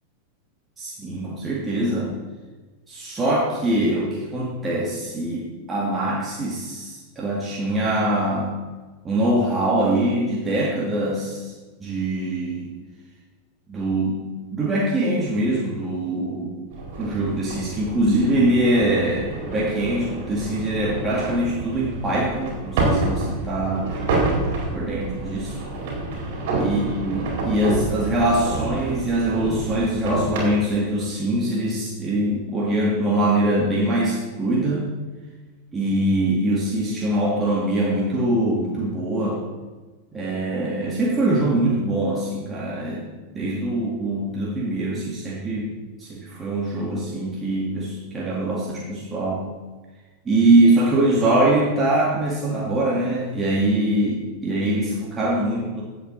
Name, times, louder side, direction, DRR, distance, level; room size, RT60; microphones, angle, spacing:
voice 1, 0.8-2.1 2.9-8.5 9.0-11.5 11.8-12.7 13.7-14.2 14.5-16.5 17.0-23.9 24.7-25.6 26.6-34.9 35.7-39.4 40.1-43.0 43.3-45.7 46.0-49.4 50.3-55.8, right 1 dB, 15° right, -4 dB, 2.2 m, -23 dB
sound 1, 16.7-30.5, right 2 dB, 50° right, 4.4 m, -28 dB
17.0 x 8.2 x 4.3 m, 1.3 s
figure-of-eight pair, 90°, 0 cm